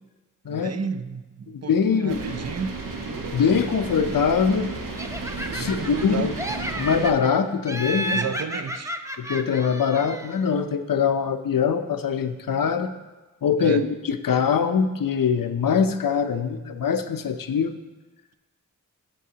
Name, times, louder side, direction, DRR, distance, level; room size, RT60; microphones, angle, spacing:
voice 1, 0.5-2.8 5.5-6.4 8.1-9.0 13.6-13.9, right 6 dB, 50° right, 0.5 m, -32 dB
voice 2, 1.5-2.2 3.3-4.7 5.5-6.3 6.8-8.2 9.2-12.9 13.4-17.8, left 6 dB, 80° left, 0.6 m, -23 dB
sound 1, 2.1-7.1, right 3 dB, 80° right, 1.0 m, -33 dB
Laughter, 5.0-6.1 6.4-7.3 7.7-10.4, right 1 dB, 10° right, 0.6 m, -32 dB
14.0 x 5.9 x 2.8 m
wide cardioid pair, 45°, 33 cm